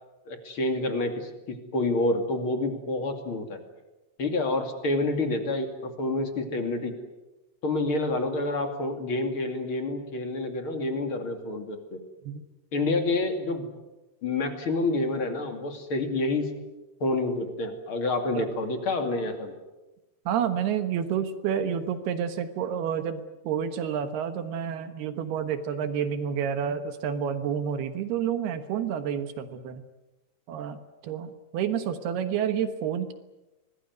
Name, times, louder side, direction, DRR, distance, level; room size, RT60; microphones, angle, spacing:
voice 1, 0.3-3.6 4.2-6.9 7.6-12.0 12.7-13.7 14.2-16.5 17.0-19.5, left 2 dB, 35° left, 6 dB, 2.6 m, -28 dB
voice 2, 20.3-29.8 30.5-33.1, right 8 dB, 70° right, 10 dB, 3.0 m, -29 dB
26.0 x 20.0 x 9.5 m, 1.0 s
omnidirectional pair, 5.3 m